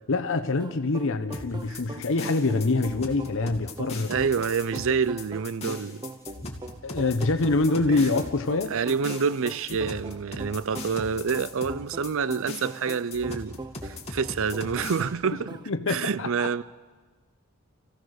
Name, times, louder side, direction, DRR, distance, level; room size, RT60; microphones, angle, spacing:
voice 1, 0.1-4.1 4.8-4.9 6.8-8.7 15.7-16.5, left 3 dB, 65° left, 0.9 m, -25 dB
sound 1, 0.6-15.7, right 2 dB, 20° right, 0.7 m, -41 dB
sound 2, 1.3-15.0, left 2 dB, 30° left, 2.6 m, -39 dB
voice 2, 4.1-6.1 7.9-8.0 8.7-15.5 15.9-16.6, right 6 dB, 65° right, 0.5 m, -27 dB
29.5 x 16.0 x 6.5 m
head